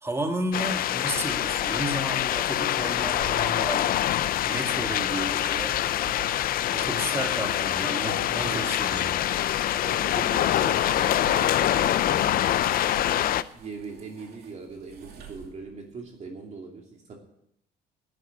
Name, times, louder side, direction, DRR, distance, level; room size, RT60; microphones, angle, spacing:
voice 1, 0.0-4.0 4.5-5.8 6.7-9.2, right 1 dB, 15° right, 5 dB, 1.9 m, -33 dB
sound 1, 0.5-13.4, left 12 dB, 60° left, 0.6 m, -25 dB
sound 2, 2.9-9.1 10.7-15.9, right 7 dB, 70° right, 2.6 m, -47 dB
voice 2, 8.0-8.7 9.7-12.3 13.1-17.1, right 4 dB, 40° right, 1 dB, 2.8 m, -40 dB
11.5 x 10.0 x 8.5 m, 0.76 s
cardioid pair, 110°, 17 cm